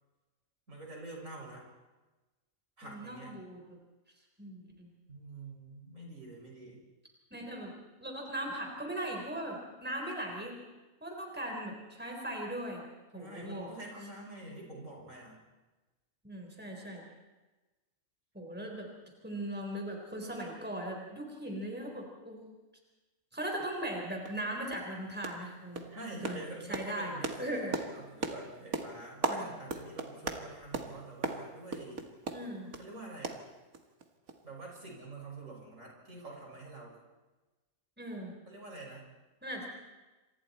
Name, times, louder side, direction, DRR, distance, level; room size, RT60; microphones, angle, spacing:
voice 1, 0.7-1.6 2.8-3.4 5.1-6.8 13.1-15.4 25.9-32.1 32.8-33.4 34.4-37.0 38.5-39.1, right 2 dB, 65° right, -2 dB, 6.7 m, -46 dB
voice 2, 2.8-3.8 4.4-4.9 7.3-7.7 8.0-10.6 11.0-12.8 13.1-13.7 16.2-17.0 18.3-18.9 19.2-22.5 23.3-25.9 26.1-26.4 26.7-27.7 29.3-29.5 32.3-32.7 38.0-38.3 39.4-39.7, right 1 dB, 5° right, 0 dB, 4.2 m, -39 dB
sound 1, 23.7-23.8 24.3-24.4 24.7-24.9 25.2-25.5 25.8-32.9 33.2-34.0 34.3-34.4 34.8-34.9, right 3 dB, 80° right, 2.2 m, -38 dB
28.5 x 26.5 x 4.4 m, 1.2 s
omnidirectional pair, 1.5 m